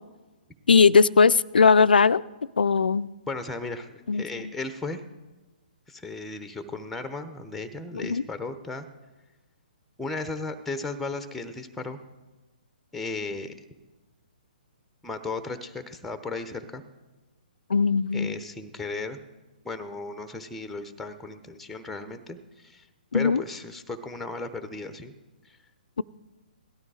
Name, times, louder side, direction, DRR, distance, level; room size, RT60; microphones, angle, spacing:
voice 1, 0.7-2.2 2.6-3.1 4.1-4.2 7.9-8.2 17.7-18.4 23.1-23.4, left 5 dB, 75° left, 17 dB, 0.4 m, -19 dB
voice 2, 3.3-5.0 5.9-8.9 10.0-12.0 12.9-13.5 15.0-16.8 18.1-19.2 19.6-22.9 23.1-25.1 25.4-25.6, left 3 dB, 5° left, 10 dB, 0.8 m, -35 dB
17.5 x 12.0 x 4.9 m, 1.2 s
figure-of-eight pair, 130°, 5 cm